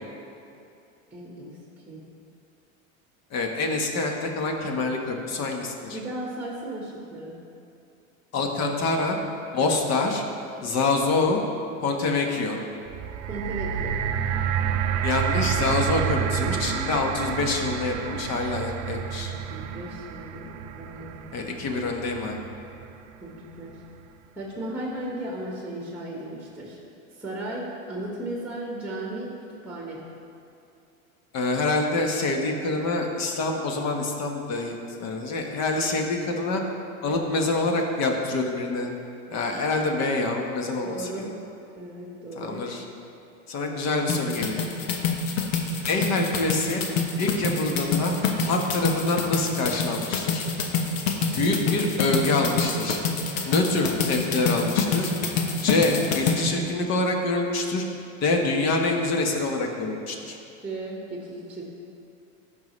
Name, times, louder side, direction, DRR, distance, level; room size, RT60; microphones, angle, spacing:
voice 1, 1.1-1.6 1.8-2.0 5.9-7.3 9.6-9.7 13.3-13.9 19.2-21.4 23.2-23.8 24.3-26.8 27.1-29.3 29.6-30.0 40.8-41.3 41.8-42.6 60.6-61.6, right 1 dB, 5° right, -3 dB, 1.5 m, -35 dB
voice 2, 3.3-6.0 8.3-9.2 9.5-10.2 10.6-11.4 11.8-12.6 15.0-19.3 21.3-22.4 31.3-36.6 37.0-38.9 39.3-41.3 42.3-42.8 43.5-44.6 45.8-46.8 47.2-48.1 48.4-50.4 51.4-53.0 53.4-55.1 55.6-57.8 58.2-60.4, left 3 dB, 40° left, 2 dB, 1.4 m, -26 dB
sound 1, 12.9-23.1 23.8-23.9, right 8 dB, 40° right, 0.6 m, -29 dB
sound 2, 44.1-56.4, left 5 dB, 75° left, 1.2 m, -26 dB
14.0 x 5.7 x 3.3 m, 2.6 s
supercardioid pair, 110°, 40 cm